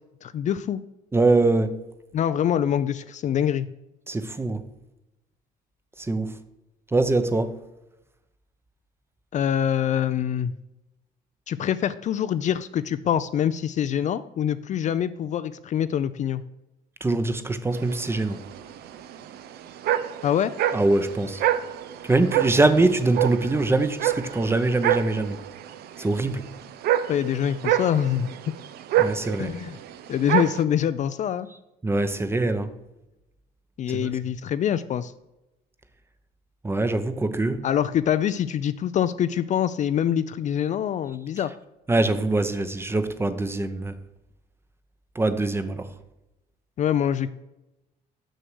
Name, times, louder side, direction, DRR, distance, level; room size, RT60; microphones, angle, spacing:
voice 1, 0.2-0.8 2.1-3.7 9.3-10.5 11.5-16.4 20.2-20.5 27.1-28.4 29.4-29.8 30.1-31.5 33.8-35.1 37.6-41.5 46.8-47.3, left 9 dB, 45° left, 13 dB, 0.4 m, -25 dB
voice 2, 1.1-1.8 4.1-4.6 6.0-6.3 6.9-7.6 17.0-18.4 20.7-21.4 22.0-25.4 26.0-26.5 29.0-29.5 31.8-32.7 33.9-34.1 36.6-37.7 41.9-43.9 45.1-45.9, right 2 dB, 15° right, 11 dB, 0.7 m, -23 dB
sound 1, 17.7-30.6, right 11 dB, 70° right, 0.6 m, -28 dB
6.4 x 6.3 x 6.1 m, 0.94 s
cardioid pair, 110°, 17 cm